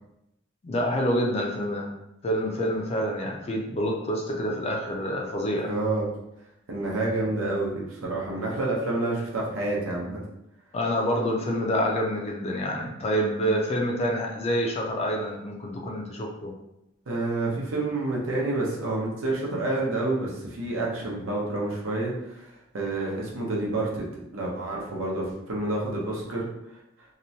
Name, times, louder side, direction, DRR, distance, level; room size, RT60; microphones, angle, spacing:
voice 1, 0.6-1.9 2.2-5.7 10.7-16.5, equal, 30° left, 0 dB, 0.4 m, -27 dB
voice 2, 5.6-6.1 6.7-10.2 17.1-26.5, right 2 dB, 80° right, -3 dB, 0.7 m, -28 dB
2.9 x 2.1 x 2.7 m, 0.85 s
head